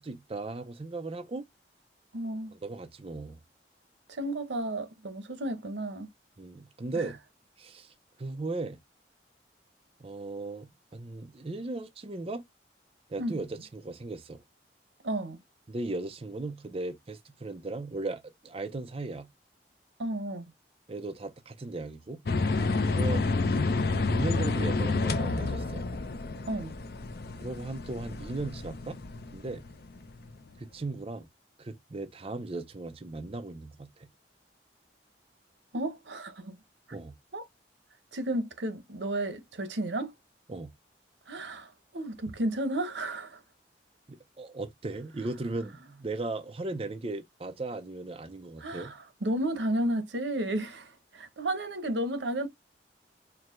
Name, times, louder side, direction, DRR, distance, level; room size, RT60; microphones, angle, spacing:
voice 1, 0.0-1.5 2.5-3.4 6.4-7.2 7.6-7.9 8.2-8.8 10.0-12.5 13.1-14.4 15.7-19.3 20.9-22.5 22.9-23.3 23.8-25.9 27.4-29.0 29.3-29.6 30.6-31.3 31.6-34.1 36.9-37.1 40.5-40.7 44.1-48.9, right 2 dB, 35° right, 0.5 m, -37 dB
voice 2, 2.1-2.5 4.1-6.1 6.9-7.1 13.2-13.4 15.0-15.4 20.0-20.5 26.5-26.7 35.7-36.6 37.3-37.5 38.1-40.1 41.3-43.4 48.6-52.5, right 1 dB, 90° right, 0.9 m, -32 dB
sound 1, 22.3-30.3, left 3 dB, 60° left, 0.6 m, -29 dB
4.7 x 2.1 x 3.6 m
head